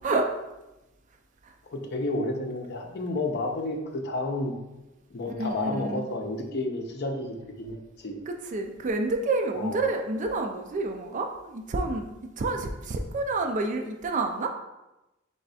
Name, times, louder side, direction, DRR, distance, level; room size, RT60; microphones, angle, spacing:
voice 1, 1.7-4.5 5.1-8.2 9.5-9.8, left 2 dB, 55° left, 2 dB, 0.6 m, -31 dB
voice 2, 5.4-6.1 8.3-14.5, right 2 dB, 40° right, 4 dB, 0.4 m, -29 dB
3.4 x 3.2 x 4.1 m, 1.0 s
head